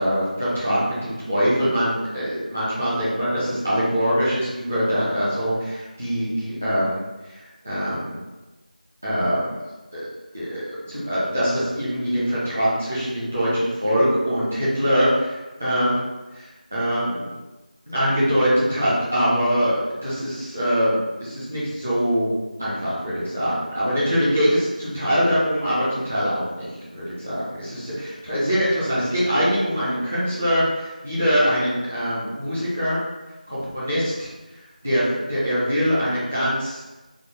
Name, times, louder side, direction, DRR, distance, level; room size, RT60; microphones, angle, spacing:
voice 1, 0.0-7.0 7.3-8.2 9.0-9.5 9.9-10.0 10.3-10.6 10.9-16.0 16.3-17.3 17.9-22.3 22.6-33.0 33.5-34.3 34.8-36.8, equal, 10° right, -9 dB, 0.4 m, -23 dB
3.5 x 2.1 x 3.6 m, 1.1 s
figure-of-eight pair, 170°, 5 cm